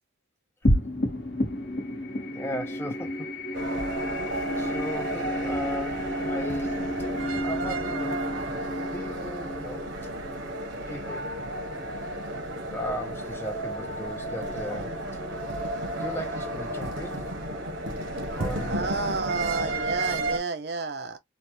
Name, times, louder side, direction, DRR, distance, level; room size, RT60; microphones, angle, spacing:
sound 1, 0.6-11.3, left 1 dB, 60° left, 1.0 m, -31 dB
voice 1, 2.3-3.6 3.9-4.1 4.6-6.8 7.4-8.2 8.9-9.9 10.9-11.3 12.5-15.0 16.0-17.3 18.3-19.0, equal, 10° left, 0.4 m, -37 dB
sound 2, 3.5-20.4, right 1 dB, 90° right, 0.9 m, -32 dB
voice 2, 18.7-21.2, right 3 dB, 60° right, 0.5 m, -31 dB
3.1 x 2.0 x 2.6 m
head